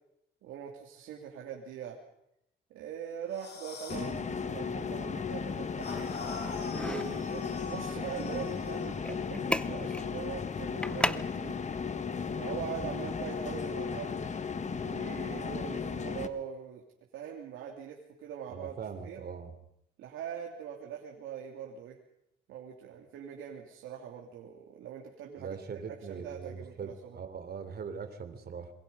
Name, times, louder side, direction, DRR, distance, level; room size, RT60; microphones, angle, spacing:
voice 1, 0.4-2.0 2.7-6.2 6.7-11.7 12.4-14.2 14.7-16.8 17.1-18.7 19.0-19.2 20.0-22.0 22.5-27.2, right 8 dB, 90° right, 0 dB, 2.9 m, -42 dB
sound 1, 3.3-4.1 5.8-8.9, left 4 dB, 55° left, 6.3 m, -43 dB
sound 2, 3.9-16.3, left 6 dB, 35° left, 1.5 m, -35 dB
sound 3, 6.7-13.5, left 1 dB, 5° left, 0.8 m, -39 dB
voice 2, 18.5-19.5 25.4-28.7, right 6 dB, 50° right, 8 dB, 3.4 m, -41 dB
26.5 x 22.0 x 5.5 m, 0.79 s
cardioid pair, 90°, 20 cm